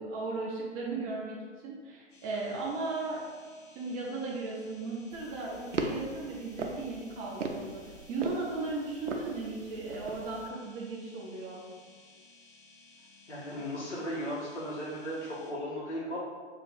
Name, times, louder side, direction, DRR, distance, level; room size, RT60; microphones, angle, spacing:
voice 1, 0.0-3.2 3.7-11.6, right 3 dB, 25° right, -3 dB, 0.6 m, -36 dB
sound 1, 2.1-15.5, left 3 dB, 25° left, 0.9 m, -58 dB
sound 2, 5.1-10.5, right 3 dB, 90° right, 0.5 m, -39 dB
voice 2, 13.3-16.2, equal, 70° left, -6 dB, 1.5 m, -36 dB
2.9 x 2.4 x 4.0 m, 1.6 s
figure-of-eight pair, 110°, 35 cm